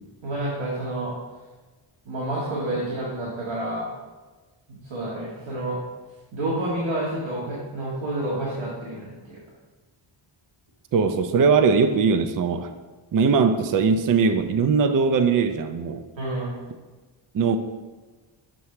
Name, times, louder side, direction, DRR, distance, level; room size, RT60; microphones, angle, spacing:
voice 1, 0.2-1.1 2.1-3.8 4.7-5.8 6.3-9.4 16.2-16.5, right 1 dB, 65° right, -7 dB, 1.8 m, -29 dB
voice 2, 10.9-12.7 13.1-16.0 17.3-17.6, right 5 dB, 40° right, 9 dB, 0.5 m, -20 dB
7.4 x 3.2 x 5.8 m, 1.3 s
cardioid pair, 80°, 50 cm